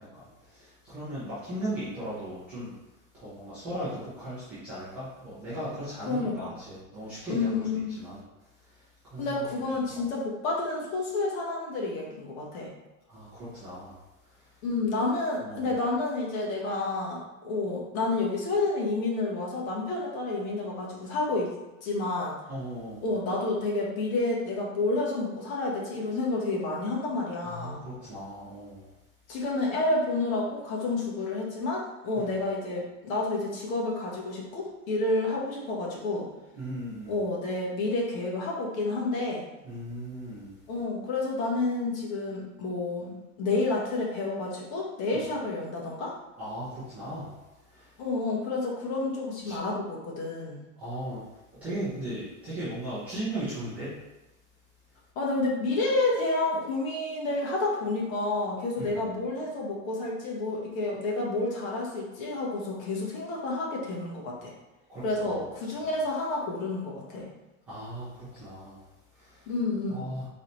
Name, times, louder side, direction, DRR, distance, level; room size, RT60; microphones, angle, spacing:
voice 1, 0.5-2.8 3.1-7.6 8.0-8.2 8.6-8.8 9.1-9.5 9.9-10.0 13.1-14.0 14.2-14.5 15.4-15.7 22.5-23.0 27.4-28.9 32.1-32.3 36.5-37.1 39.6-40.6 45.1-45.3 46.4-48.0 49.4-49.6 50.8-51.2 51.5-54.0 58.8-59.0 64.9-65.4 67.7-69.5 69.9-70.3, right 1 dB, 5° right, -16 dB, 0.3 m, -37 dB
voice 2, 6.0-6.5 7.3-8.0 9.2-12.7 14.6-21.5 21.8-22.4 23.0-27.8 29.3-36.3 37.1-39.4 40.7-46.1 48.0-50.6 55.1-64.5 65.0-67.3 69.5-70.1, left 2 dB, 80° left, -3 dB, 1.5 m, -30 dB
4.0 x 3.2 x 3.9 m, 1.0 s
supercardioid pair, 180°, 41 cm